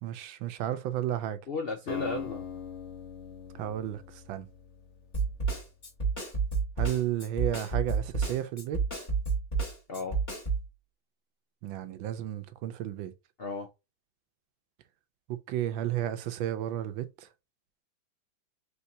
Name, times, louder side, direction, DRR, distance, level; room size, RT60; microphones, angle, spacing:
voice 1, 0.0-1.4 3.5-4.5 6.8-9.0 11.6-13.1 15.3-17.3, right 12 dB, 80° right, 1.4 m, -33 dB
voice 2, 1.5-2.7 9.9-10.2 13.4-13.7, left 3 dB, 65° left, 0.5 m, -35 dB
Acoustic guitar, 1.9-6.0, left 6 dB, 45° left, 1.2 m, -42 dB
Snare drum, 5.1-10.6, right 5 dB, 25° left, 1.9 m, -30 dB
4.6 x 3.5 x 2.7 m
omnidirectional pair, 2.1 m